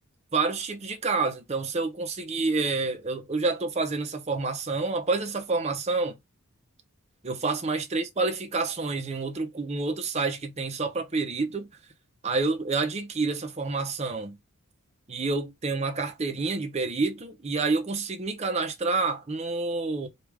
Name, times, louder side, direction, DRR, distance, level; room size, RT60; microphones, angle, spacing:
voice 1, 0.3-6.2 7.2-11.7 12.2-14.4 15.1-20.1, right 3 dB, 30° right, 0.6 m, -28 dB
3.2 x 2.4 x 3.4 m
head